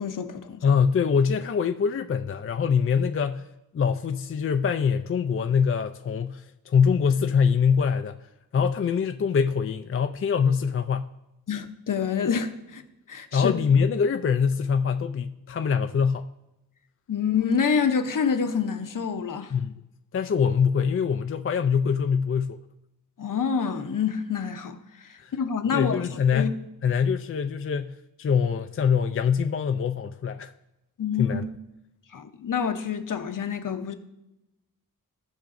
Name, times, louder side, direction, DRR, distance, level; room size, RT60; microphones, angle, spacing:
voice 1, 0.0-0.6 11.5-12.8 13.1-13.6 17.1-19.5 23.2-24.8 25.3-26.1 26.3-26.5 31.0-31.4 32.1-33.9, left 6 dB, 60° left, 0.8 m, -27 dB
voice 2, 0.6-3.5 3.7-8.2 8.5-11.1 13.3-16.3 19.5-19.7 20.1-22.6 25.2-25.3 25.7-26.5 26.8-30.5 31.2-31.5, left 6 dB, 40° left, 0.4 m, -24 dB
17.0 x 5.8 x 2.6 m
wide cardioid pair, 90°, 36 cm